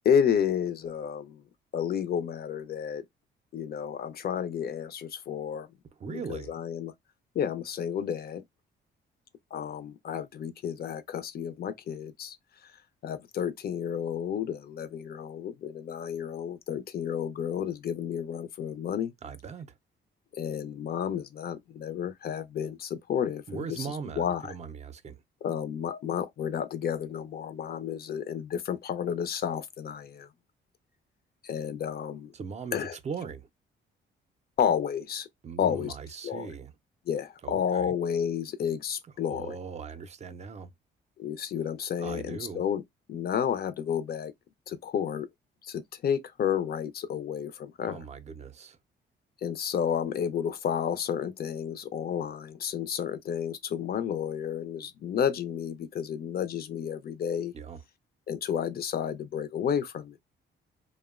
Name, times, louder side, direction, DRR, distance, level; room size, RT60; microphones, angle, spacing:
voice 1, 0.0-1.4 1.7-3.0 3.5-5.7 6.1-6.9 7.3-8.4 9.5-12.4 13.0-19.1 20.3-24.5 25.4-30.3 31.4-32.3 32.7-33.0 34.6-35.3 35.6-36.0 36.2-36.5 37.1-39.6 41.2-42.8 43.1-44.3 44.7-45.3 45.6-48.0 49.4-57.5 58.3-60.2, left 8 dB, 50° left, 0.5 m, -31 dB
voice 2, 6.0-6.5 19.2-19.7 23.5-25.2 32.3-33.5 35.4-36.7 37.4-37.9 39.3-40.7 42.0-42.6 47.9-48.8 57.5-57.8, right 6 dB, 35° right, 0.5 m, -39 dB
2.8 x 2.1 x 2.3 m
cardioid pair, 90°, 20 cm